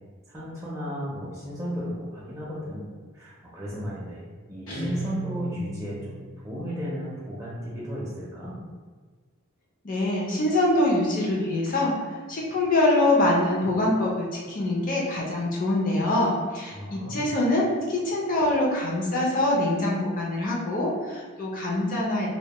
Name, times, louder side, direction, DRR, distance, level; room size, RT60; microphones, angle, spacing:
voice 1, 0.3-2.9 3.1-4.2 4.5-6.2 6.4-8.6 16.7-17.3, equal, 15° right, -8 dB, 0.4 m, -34 dB
Guitar, 4.7-6.4, right 2 dB, 70° left, 0.9 m, -35 dB
voice 2, 9.8-22.3, left 1 dB, 40° left, -3 dB, 0.5 m, -24 dB
2.1 x 2.1 x 2.8 m, 1.5 s
head